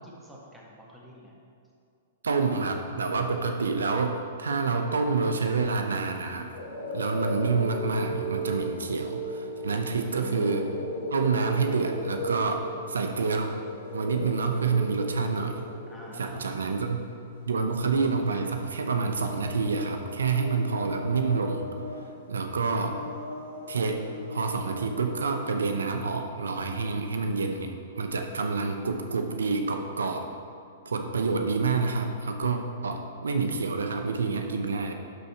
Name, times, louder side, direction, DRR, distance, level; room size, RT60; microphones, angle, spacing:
voice 1, 0.0-1.3 9.9-11.0 15.9-16.5, equal, 5° right, -5 dB, 1.7 m, -46 dB
voice 2, 2.2-6.5 6.9-10.6 11.1-13.5 13.9-15.6 16.2-17.0 17.5-21.7 22.3-23.0 23.7-24.0 24.3-27.7 28.0-30.3 30.9-34.9, right 4 dB, 90° right, 5 dB, 0.7 m, -28 dB
sound 1, 6.5-25.6, equal, 75° left, 1.7 m, -37 dB
11.5 x 4.1 x 4.4 m, 2.4 s
hypercardioid pair, 125°, 0 cm